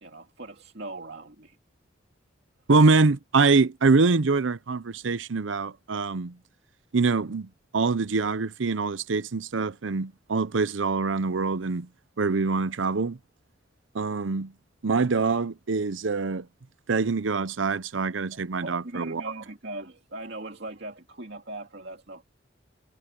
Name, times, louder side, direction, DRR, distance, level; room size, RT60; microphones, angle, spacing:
voice 1, 0.0-1.6 18.3-22.2, right 2 dB, 65° right, 2.3 m, -40 dB
voice 2, 2.7-6.3 6.9-7.5 7.7-11.9 12.2-13.2 13.9-14.5 14.8-16.5 16.9-19.2, right 4 dB, 90° right, 0.7 m, -24 dB
head